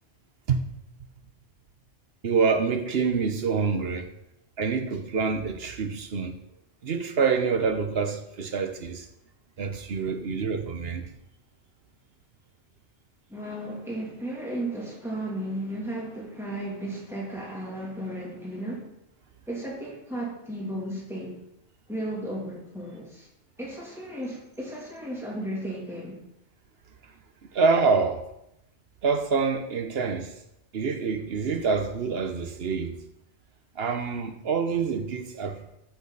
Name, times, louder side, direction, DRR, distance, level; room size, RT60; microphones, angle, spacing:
voice 1, 2.2-4.1 4.6-6.3 6.8-9.0 9.6-11.1 27.5-28.2 29.0-30.3 30.7-33.0 33.8-35.6, right 5 dB, 60° right, 1.1 m, -26 dB
voice 2, 13.3-18.9 19.5-21.3 21.9-23.3 23.6-26.2, right 1 dB, ahead, 2.9 m, -34 dB
13.5 x 6.7 x 4.1 m
omnidirectional pair, 1.2 m